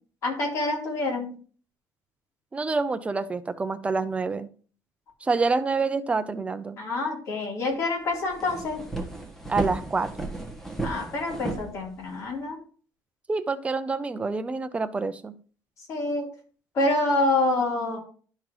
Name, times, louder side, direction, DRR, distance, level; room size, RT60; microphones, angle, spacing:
voice 1, 0.2-1.3 6.8-8.8 10.8-12.6 15.9-16.3 16.7-18.0, left 2 dB, 50° left, -2 dB, 3.7 m, -27 dB
voice 2, 2.5-4.5 5.2-6.8 9.5-10.3 13.3-15.3, right 4 dB, 20° right, 10 dB, 0.6 m, -27 dB
sound 1, 7.7-7.8 8.1-12.3, right 2 dB, 5° left, 1.3 m, -34 dB
12.0 x 5.7 x 3.1 m, 0.41 s
cardioid pair, 150°, 7 cm